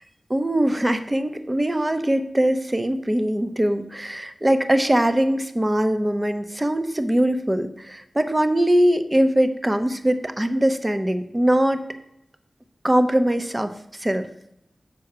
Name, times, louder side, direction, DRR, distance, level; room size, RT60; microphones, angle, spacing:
voice 1, 0.3-11.8 12.8-14.3, right 1 dB, 20° right, 9 dB, 0.7 m, -21 dB
6.8 x 4.8 x 6.7 m, 0.81 s
wide cardioid pair, 60°, 0 cm